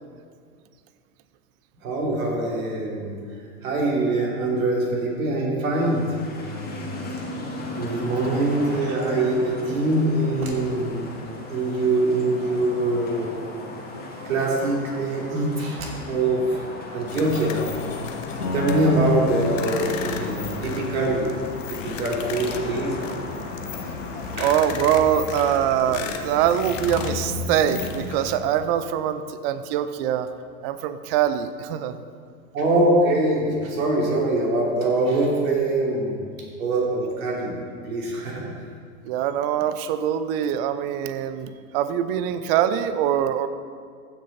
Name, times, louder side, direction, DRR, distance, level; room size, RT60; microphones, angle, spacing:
voice 1, 1.8-3.1 3.6-6.1 6.3-7.0 7.8-11.1 11.5-13.4 14.2-16.7 16.9-17.6 18.5-21.3 21.7-22.9 24.4-24.5 32.5-36.2 36.6-37.5 37.8-38.5, right 2 dB, 65° right, -2 dB, 3.1 m, -23 dB
sound 1, 5.7-24.5, left 2 dB, 20° left, 2.1 m, -37 dB
sound 2, 17.1-28.4, left 6 dB, 55° left, 1.2 m, -34 dB
Piano, 18.4-28.0, left 2 dB, 85° left, 1.8 m, -37 dB
voice 2, 24.4-30.3 30.6-32.0 39.0-43.5, right 10 dB, 40° right, 12 dB, 0.7 m, -23 dB
15.0 x 6.7 x 4.2 m, 2.1 s
hypercardioid pair, 100°, 44 cm